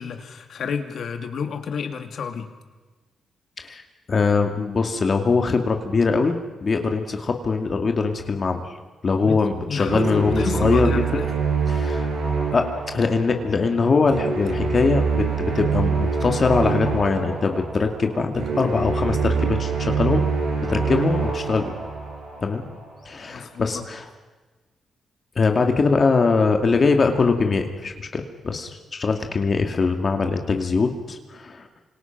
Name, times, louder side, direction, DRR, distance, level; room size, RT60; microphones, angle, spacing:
voice 1, 0.0-2.5 9.2-9.4 9.7-11.3 20.8-21.1 23.3-23.8, left 6 dB, 65° left, 6 dB, 2.7 m, -30 dB
voice 2, 4.1-8.7 9.0-11.2 11.7-12.1 12.5-20.2 20.7-21.7 22.4-22.6 23.1-24.1 25.4-31.7, left 4 dB, 40° left, 5 dB, 2.3 m, -22 dB
sound 1, 9.8-22.9, right 5 dB, 85° right, 5.3 m, -25 dB
29.0 x 26.0 x 6.1 m, 1.3 s
cardioid pair, 115°, 0 cm